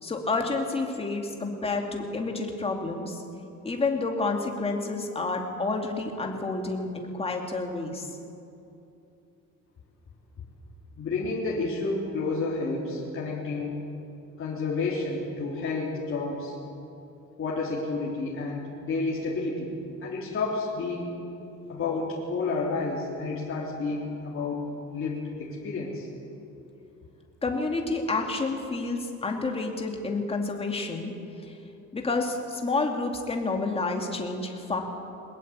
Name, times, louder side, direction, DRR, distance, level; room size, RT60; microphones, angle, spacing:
voice 1, 0.0-3.2 3.6-8.1 27.4-31.1 31.9-34.8, left 3 dB, 20° left, 2 dB, 2.5 m, -29 dB
voice 2, 11.0-13.8 14.4-16.6 17.4-19.7 20.0-21.1 21.7-24.7 24.9-26.1, left 3 dB, 45° left, -5 dB, 3.4 m, -30 dB
22.0 x 20.5 x 8.8 m, 2.8 s
cardioid pair, 165°, 29 cm